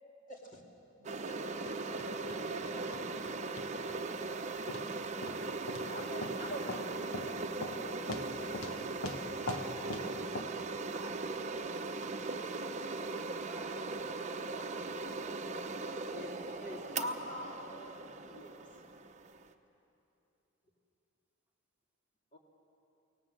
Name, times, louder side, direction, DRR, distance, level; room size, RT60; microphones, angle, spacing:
voice 1, 0.3-0.6 1.1-2.0 5.9-7.4 7.7-8.7 14.4-14.7 16.1-18.5 22.3-22.4, left 1 dB, 40° left, 0 dB, 2.9 m, -45 dB
sound 1, 1.0-19.5, right 3 dB, 35° right, 0.9 m, -39 dB
voice 2, 1.0-3.4 9.5-10.6, right 4 dB, 80° right, 10 dB, 0.7 m, -52 dB
sound 2, 1.4-5.1 8.8-8.9, left 3 dB, 70° left, 1.3 m, -55 dB
sound 3, 1.7-1.8 2.0-2.7 2.9-3.3 3.6-4.0 4.7-4.9 5.2-5.4 5.7-5.9 6.2-6.4 6.7-6.9 7.1-7.3 7.6-7.8 8.1-8.8 9.0-10.1 10.3-10.4, left 2 dB, 85° left, 1.4 m, -40 dB
voice 3, 10.9-11.3 13.3-13.9 19.5-19.6, right 1 dB, 5° right, 0 dB, 1.7 m, -59 dB
24.0 x 18.5 x 7.7 m, 2.9 s
head